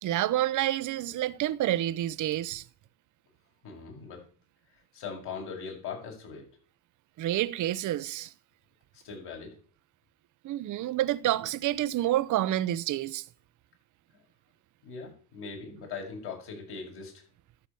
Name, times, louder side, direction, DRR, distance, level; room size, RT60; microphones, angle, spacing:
voice 1, 0.0-2.6 7.2-8.3 10.4-13.2, right 13 dB, 40° right, 0.8 m, -28 dB
voice 2, 3.6-4.2 4.9-6.5 9.0-9.5 14.8-17.2, left 5 dB, 60° left, 6.5 m, -40 dB
12.5 x 6.8 x 7.0 m
hypercardioid pair, 80°, 46 cm